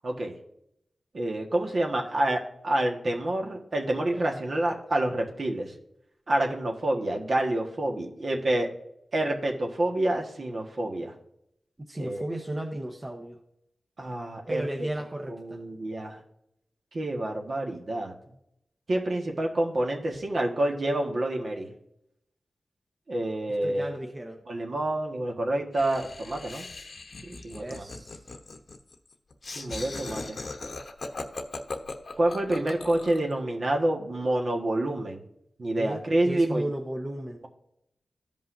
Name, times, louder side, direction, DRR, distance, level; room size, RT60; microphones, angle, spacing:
voice 1, 1.1-5.7 6.3-8.7 9.1-11.1 12.0-12.3 14.0-14.9 15.3-16.2 16.9-18.1 18.9-21.7 23.1-23.9 24.5-26.7 27.2-27.8 29.5-30.4 32.2-35.2 35.6-36.7, right 1 dB, 50° right, 1 dB, 1.5 m, -28 dB
voice 2, 11.9-13.4 14.5-15.6 23.6-24.4 27.5-28.2 35.8-37.4, right 1 dB, 25° right, 2 dB, 0.9 m, -35 dB
Laughter, 25.7-33.3, left 3 dB, 55° left, 0.9 m, -39 dB
14.0 x 5.4 x 2.6 m, 0.79 s
wide cardioid pair, 80°, 0 cm